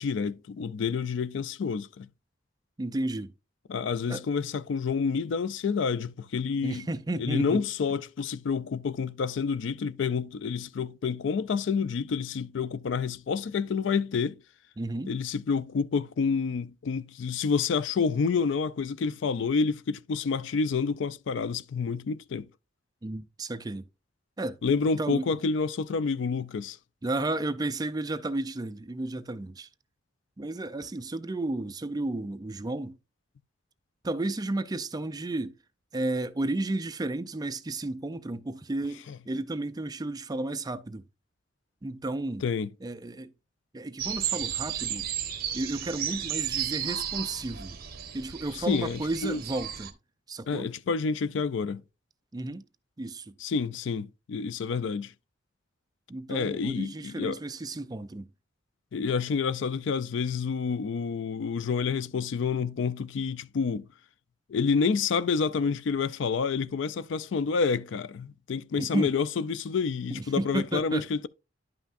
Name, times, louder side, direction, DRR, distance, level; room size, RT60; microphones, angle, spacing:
voice 1, 0.0-2.1 3.7-6.9 7.2-14.4 15.1-22.5 24.6-26.8 39.1-39.2 42.4-42.7 48.5-49.4 50.5-51.8 53.4-55.1 56.3-57.4 58.9-63.9 64.5-71.3, left 5 dB, 65° left, 0.4 m, -28 dB
voice 2, 2.8-3.3 4.1-4.2 6.6-7.6 14.8-15.1 23.0-23.8 24.4-24.6 25.0-25.3 27.0-29.7 30.4-33.0 34.0-35.5 35.9-41.0 41.8-42.4 42.8-43.3 43.7-45.1 45.5-47.8 48.1-49.9 50.3-50.7 52.3-52.6 53.0-53.3 56.1-58.3 68.8-69.1 70.1-71.1, right 2 dB, 20° right, 0.4 m, -32 dB
sound 1, 44.0-49.9, right 10 dB, 50° right, 1.0 m, -33 dB
10.5 x 5.7 x 2.5 m
head